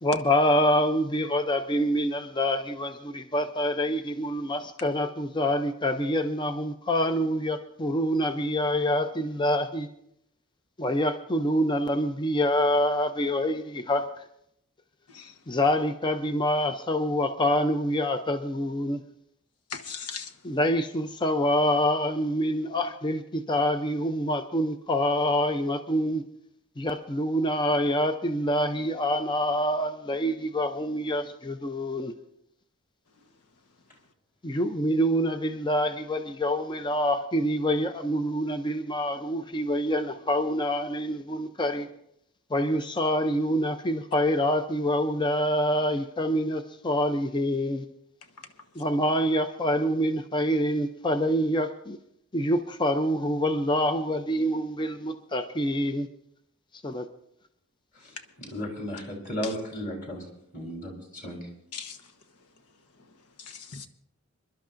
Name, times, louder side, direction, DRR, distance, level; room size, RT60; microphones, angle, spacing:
voice 1, 0.0-9.9 10.8-14.2 15.5-19.0 20.4-26.2 26.8-32.1 34.4-41.9 42.5-47.9 48.8-52.0 52.3-56.1 56.7-57.1, equal, 20° left, 0.5 m, -26 dB
voice 2, 19.7-20.3 59.4-59.5 61.7-62.0 63.4-63.9, left 6 dB, 85° left, 1.1 m, -38 dB
voice 3, 58.5-60.2 60.5-61.5, equal, 35° left, 3.5 m, -34 dB
27.5 x 11.5 x 2.5 m
head